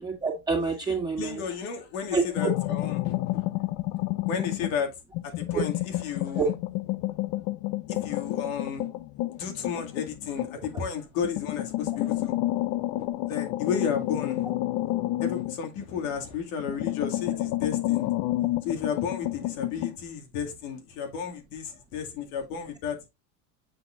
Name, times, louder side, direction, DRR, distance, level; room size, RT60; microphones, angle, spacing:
voice 1, 0.0-1.4 2.1-2.5 5.5-5.6 6.4-6.5, right 5 dB, 10° right, 2.3 m, -27 dB
voice 2, 1.2-3.4 4.3-4.9 5.2-6.5 7.9-8.9 9.3-12.3 13.0-14.5 15.2-18.1 18.6-23.1, left 7 dB, 75° left, 2.5 m, -33 dB
sound 1, 2.4-4.8 5.1-10.8 11.2-16.3 16.6-20.0, left 17 dB, 50° left, 0.5 m, -30 dB
7.6 x 5.8 x 2.5 m
supercardioid pair, 105°, 42 cm